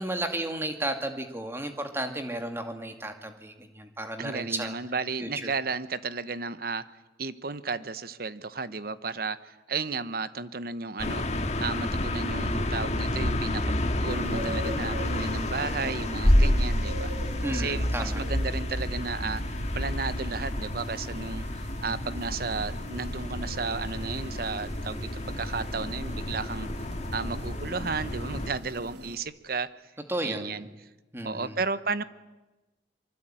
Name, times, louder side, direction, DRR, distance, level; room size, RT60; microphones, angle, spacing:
voice 1, 0.0-4.7 5.2-5.5 17.4-18.2 30.1-30.7 31.1-31.5, right 1 dB, 15° right, 6 dB, 2.4 m, -33 dB
voice 2, 4.2-6.8 7.2-11.2 11.6-17.1 17.5-26.7 27.1-29.7 30.2-30.7 31.2-32.0, right 4 dB, 55° right, 14 dB, 1.0 m, -33 dB
sound 1, 11.0-28.5, left 1 dB, 40° left, 1.7 m, -29 dB
sound 2, 14.1-29.2, right 2 dB, 70° right, 2.6 m, -44 dB
25.5 x 24.5 x 9.0 m, 1.1 s
head